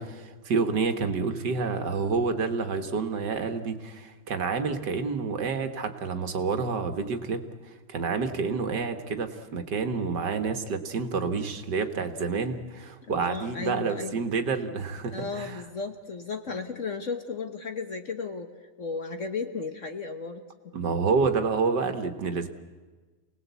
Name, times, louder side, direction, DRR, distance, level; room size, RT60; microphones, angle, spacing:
voice 1, 0.0-15.6 20.7-22.5, right 4 dB, 60° right, 8 dB, 1.9 m, -29 dB
voice 2, 13.1-14.1 15.1-20.5, left 4 dB, 45° left, 7 dB, 1.3 m, -35 dB
28.0 x 19.0 x 8.2 m, 1.4 s
omnidirectional pair, 2.2 m